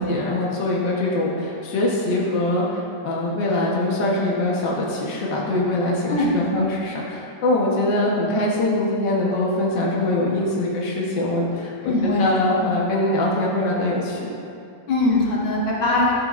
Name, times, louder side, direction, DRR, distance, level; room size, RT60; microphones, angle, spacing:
voice 1, 0.0-14.3, left 1 dB, 80° left, -4 dB, 1.0 m, -23 dB
voice 2, 6.1-6.6 11.8-12.6 14.9-16.1, left 2 dB, 50° left, -5 dB, 1.8 m, -21 dB
11.5 x 9.3 x 2.5 m, 2.6 s
omnidirectional pair, 3.7 m